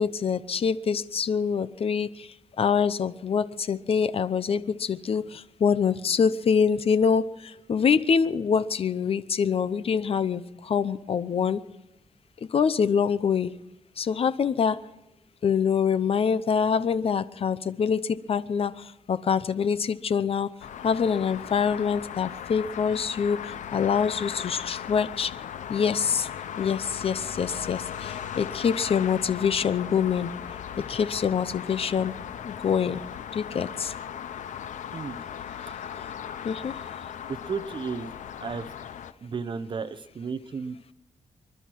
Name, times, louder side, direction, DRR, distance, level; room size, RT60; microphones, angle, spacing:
voice 1, 0.0-11.6 12.5-13.5 14.0-14.8 15.4-20.5 20.8-25.3 25.7-26.3 26.6-30.3 30.9-32.1 32.4-33.0 33.3-33.9 36.4-36.8, left 6 dB, 50° left, 15 dB, 0.7 m, -25 dB
sound 1, 20.6-39.1, left 9 dB, 80° left, 0.7 m, -38 dB
voice 2, 37.3-38.1 38.4-38.7 39.2-40.9, right 5 dB, 40° right, 11 dB, 0.9 m, -33 dB
27.0 x 11.5 x 4.6 m, 0.88 s
wide cardioid pair, 125°, 12 cm